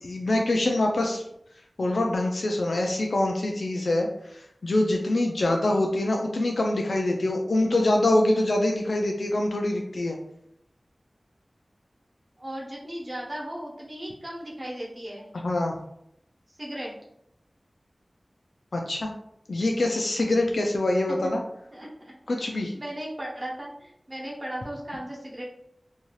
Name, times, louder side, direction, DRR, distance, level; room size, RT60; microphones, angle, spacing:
voice 1, 0.0-1.2 1.8-10.2 15.3-15.8 18.7-19.1 19.5-21.4 22.3-22.7, left 1 dB, 90° left, 1 dB, 0.3 m, -25 dB
voice 2, 12.4-15.3 16.6-16.9 21.7-22.1 22.5-25.4, right 1 dB, 35° right, -3 dB, 0.8 m, -36 dB
2.6 x 2.3 x 3.0 m, 0.75 s
wide cardioid pair, 70°, 0 cm